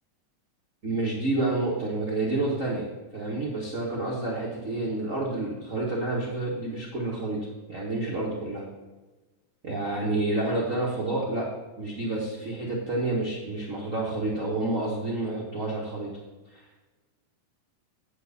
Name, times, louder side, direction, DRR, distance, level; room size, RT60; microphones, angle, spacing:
voice 1, 0.8-8.6 9.6-11.5 11.8-16.2 16.5-16.6, right 2 dB, 75° right, -4 dB, 0.7 m, -29 dB
9.1 x 4.7 x 6.9 m, 1.2 s
omnidirectional pair, 3.8 m